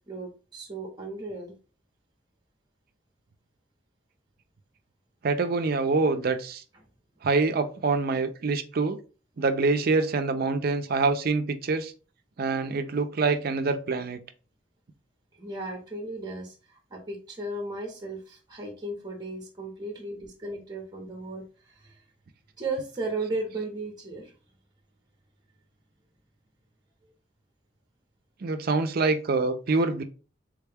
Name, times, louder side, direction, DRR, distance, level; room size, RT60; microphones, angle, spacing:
voice 1, 0.1-1.5 15.3-22.0 22.6-24.3 27.0-27.1, right 2 dB, 20° right, 0 dB, 0.8 m, -35 dB
voice 2, 5.2-6.6 7.2-9.0 9.4-11.9 12.4-14.2 28.4-30.0, right 3 dB, 50° right, 9 dB, 0.5 m, -25 dB
3.5 x 2.3 x 3.3 m, 0.35 s
head